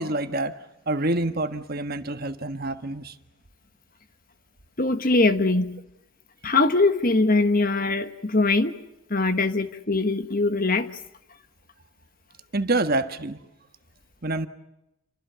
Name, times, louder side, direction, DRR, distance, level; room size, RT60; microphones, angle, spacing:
voice 1, 0.0-3.1 12.5-13.4 14.2-14.5, right 2 dB, 45° right, 1.5 m, -27 dB
voice 2, 4.8-5.8 6.4-8.7 9.1-10.9, left 3 dB, 40° left, 1.5 m, -22 dB
29.5 x 24.5 x 7.0 m
head